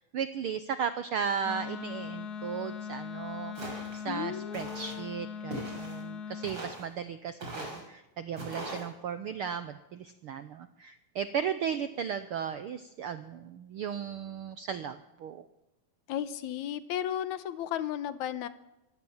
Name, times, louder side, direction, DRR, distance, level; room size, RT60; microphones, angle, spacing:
voice 1, 0.0-15.5, right 7 dB, 75° right, 11 dB, 1.2 m, -36 dB
Wind instrument woodwind instrument, 1.4-6.6, left 7 dB, 45° left, 1.5 m, -40 dB
Walk footsteps, 3.6-4.0 4.5-5.0 5.5-6.0 6.4-6.9 7.4-7.8 8.4-8.8, right 1 dB, 35° right, 6.6 m, -40 dB
voice 2, 4.1-5.0 16.1-18.5, left 10 dB, 75° left, 13 dB, 2.3 m, -34 dB
24.0 x 16.0 x 7.3 m, 0.94 s
omnidirectional pair, 3.5 m